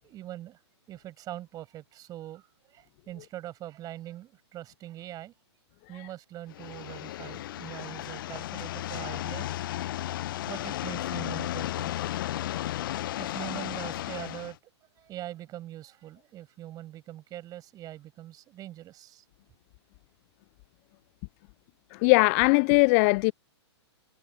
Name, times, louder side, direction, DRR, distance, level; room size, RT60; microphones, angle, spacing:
voice 1, 0.0-0.6 0.9-5.3 5.9-9.6 10.4-11.9 13.2-14.6 15.0-19.2, right 13 dB, 25° right, 6.3 m, -42 dB
sound 1, 6.5-14.5, left 14 dB, 50° left, 1.0 m, -34 dB
voice 2, 21.9-23.3, left 33 dB, 30° left, 0.4 m, -20 dB
figure-of-eight pair, 115°, 15 cm